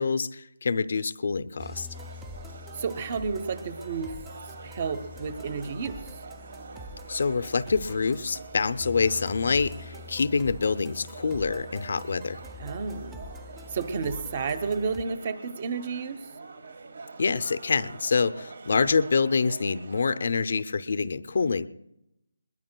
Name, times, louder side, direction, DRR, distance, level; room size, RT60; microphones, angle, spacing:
voice 1, 0.0-1.9 7.1-12.4 17.2-21.7, left 4 dB, 55° left, 12 dB, 0.6 m, -26 dB
sound 1, 1.6-15.0, left 2 dB, 5° right, 0.5 m, -45 dB
sound 2, 1.9-20.3, right 4 dB, 65° right, 1.4 m, -46 dB
voice 2, 2.7-4.3 4.6-6.0 12.6-13.2 13.7-16.3, right 5 dB, 30° right, 13 dB, 0.8 m, -31 dB
21.5 x 21.0 x 2.2 m, 0.85 s
figure-of-eight pair, 170°, 0 cm